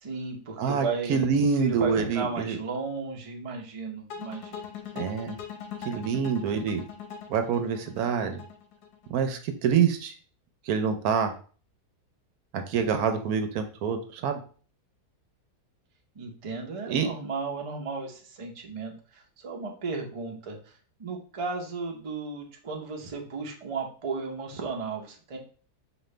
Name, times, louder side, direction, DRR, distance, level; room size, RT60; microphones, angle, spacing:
voice 1, 0.0-1.2 1.5-4.7 16.2-20.6 21.0-25.4, right 4 dB, 45° right, 1 dB, 0.4 m, -34 dB
voice 2, 0.6-2.6 4.9-5.3 5.9-6.8 7.3-8.4 9.1-10.1 10.7-11.3 12.5-14.4 16.9-17.1, right 6 dB, 75° right, 7 dB, 1.0 m, -26 dB
sound 1, 4.1-9.2, left 7 dB, 80° left, 1.2 m, -41 dB
5.2 x 2.5 x 3.1 m, 0.40 s
omnidirectional pair, 1.7 m